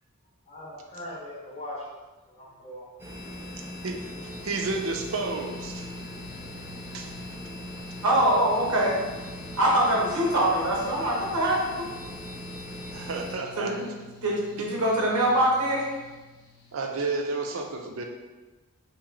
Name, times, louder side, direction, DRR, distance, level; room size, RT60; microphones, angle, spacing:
voice 1, 0.5-3.5, left 1 dB, 30° left, -5 dB, 0.7 m, -41 dB
sound 1, 3.0-13.3, left 1 dB, 10° right, 0.5 m, -40 dB
voice 2, 3.8-5.9 6.6-6.7 6.9-7.2 12.9-13.8 16.7-18.0, right 3 dB, 65° right, 3 dB, 0.4 m, -31 dB
Mechanical fan, 4.3-16.8, left 4 dB, 80° left, 0.6 m, -50 dB
voice 3, 8.0-9.0 9.6-11.9 13.6-13.9 14.2-15.9, right 1 dB, 90° right, -3 dB, 1.0 m, -23 dB
2.9 x 2.8 x 3.7 m, 1.2 s
head